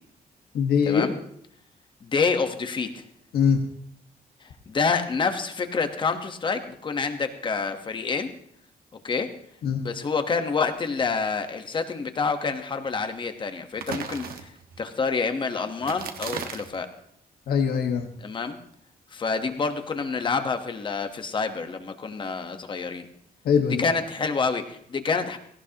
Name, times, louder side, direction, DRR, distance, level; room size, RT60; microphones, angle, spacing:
voice 1, 0.5-1.1 3.3-3.6 9.6-9.8 17.5-18.1 23.4-23.8, left 7 dB, 80° left, 3 dB, 1.4 m, -22 dB
voice 2, 2.0-3.0 4.7-8.3 9.0-9.3 9.8-14.5 14.8-16.9 18.2-18.6 19.1-23.1 23.8-25.4, left 4 dB, 30° left, 8 dB, 1.2 m, -27 dB
sound 1, 13.8-14.8 15.8-16.8, right 6 dB, 70° right, 1.5 m, -35 dB
17.5 x 17.5 x 2.9 m, 0.69 s
wide cardioid pair, 180°, 16 cm